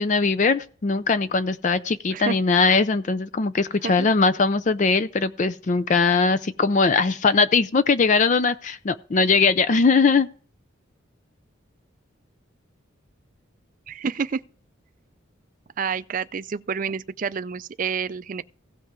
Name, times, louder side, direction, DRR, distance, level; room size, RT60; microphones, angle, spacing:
voice 1, 0.0-10.3, left 4 dB, 35° left, 0.4 m, -20 dB
voice 2, 13.9-14.4 15.8-18.4, right 6 dB, 40° right, 0.4 m, -29 dB
16.5 x 5.5 x 3.6 m
head